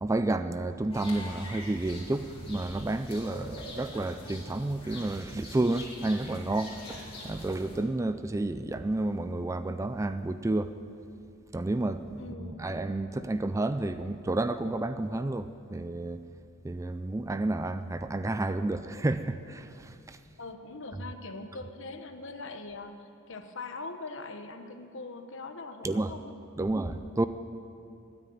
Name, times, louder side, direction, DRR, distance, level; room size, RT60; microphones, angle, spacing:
voice 1, 0.0-6.8 7.2-10.7 11.5-16.2 16.6-20.2 25.8-26.1 26.6-27.3, right 2 dB, 15° right, 11 dB, 0.3 m, -30 dB
sound 1, 0.9-7.8, left 1 dB, 25° left, 2.8 m, -44 dB
voice 2, 12.2-12.7 20.4-26.3 26.6-26.7, left 3 dB, 60° left, 7 dB, 1.1 m, -42 dB
13.0 x 9.7 x 9.3 m, 2.5 s
head